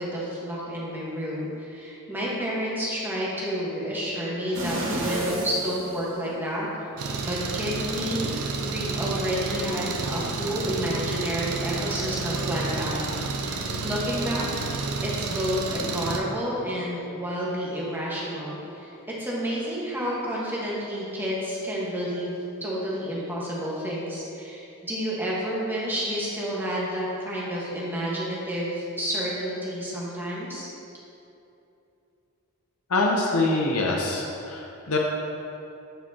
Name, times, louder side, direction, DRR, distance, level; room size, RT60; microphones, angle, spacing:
voice 1, 0.0-6.9 7.2-8.3 8.6-13.0 13.3-13.4 13.8-14.5 14.7-30.7, equal, 10° right, -6 dB, 1.2 m, -30 dB
sound 1, 4.5-6.7 7.1-7.2, right 1 dB, 60° right, 1.3 m, -30 dB
Engine, 7.0-16.2, right 3 dB, 90° right, 0.6 m, -30 dB
voice 2, 32.9-35.0, left 2 dB, 85° left, -1 dB, 0.6 m, -24 dB
9.1 x 4.4 x 2.7 m, 2.8 s
head